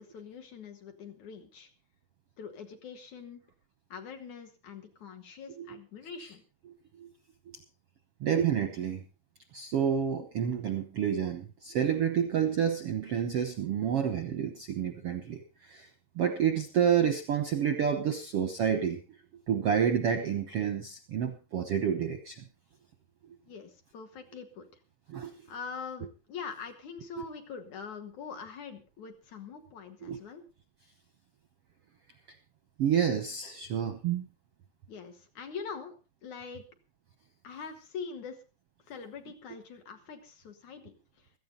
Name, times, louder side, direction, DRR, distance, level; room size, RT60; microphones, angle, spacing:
voice 1, 0.0-1.7 2.4-3.4 3.9-6.4 23.5-24.7 25.5-30.4 34.9-36.0 36.2-36.6 37.4-38.4 38.9-41.4, left 6 dB, 60° left, 6 dB, 2.7 m, -43 dB
voice 2, 8.2-9.0 9.5-15.9 16.2-19.0 19.5-22.4 25.1-25.3 30.1-30.2 32.8-34.3, right 8 dB, 65° right, 8 dB, 1.5 m, -29 dB
16.5 x 13.5 x 3.9 m, 0.30 s
omnidirectional pair, 4.1 m